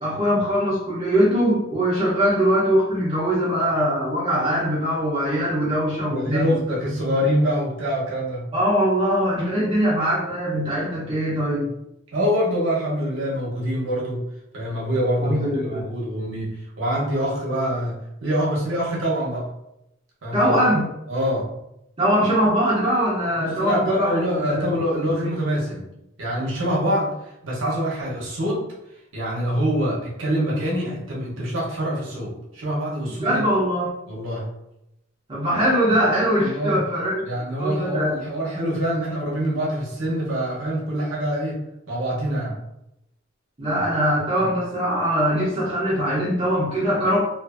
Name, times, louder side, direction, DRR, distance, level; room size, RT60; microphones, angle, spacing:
voice 1, 0.0-6.5 8.5-11.7 15.2-15.8 20.3-20.9 22.0-24.2 24.4-25.1 33.2-34.0 35.3-37.2 37.6-38.2 43.6-47.2, equal, 30° right, -8 dB, 0.7 m, -22 dB
voice 2, 6.0-8.5 12.1-14.3 14.5-19.5 20.2-20.5 21.1-21.5 23.3-25.9 26.2-28.7 29.1-33.4 34.1-34.5 36.4-36.8 37.2-41.6 41.9-42.6 44.3-44.5, equal, 70° right, -5 dB, 0.9 m, -25 dB
2.6 x 2.5 x 2.4 m, 0.84 s
head